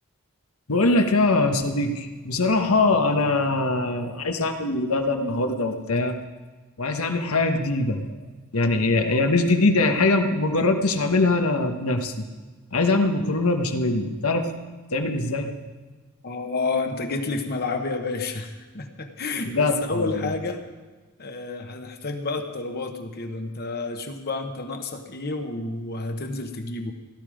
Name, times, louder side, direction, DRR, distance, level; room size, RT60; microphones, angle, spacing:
voice 1, 0.7-6.1 6.8-8.0 8.5-12.3 12.7-14.5 14.9-15.5 19.4-20.3, left 2 dB, 85° left, 5 dB, 1.3 m, -22 dB
voice 2, 16.2-20.6 21.2-26.9, left 3 dB, 45° left, 5 dB, 1.2 m, -30 dB
16.5 x 12.5 x 5.0 m, 1.3 s
head